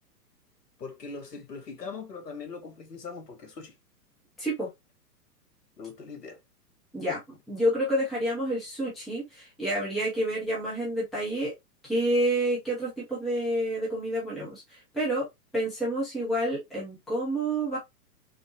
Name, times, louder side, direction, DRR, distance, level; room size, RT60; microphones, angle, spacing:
voice 1, 0.8-3.8 5.8-6.4, left 4 dB, 80° left, 1.2 m, -41 dB
voice 2, 4.4-4.7 6.9-11.5 11.8-15.3 15.5-17.8, right 1 dB, ahead, 0.4 m, -29 dB
3.8 x 2.1 x 2.7 m
figure-of-eight pair, 115°, 48 cm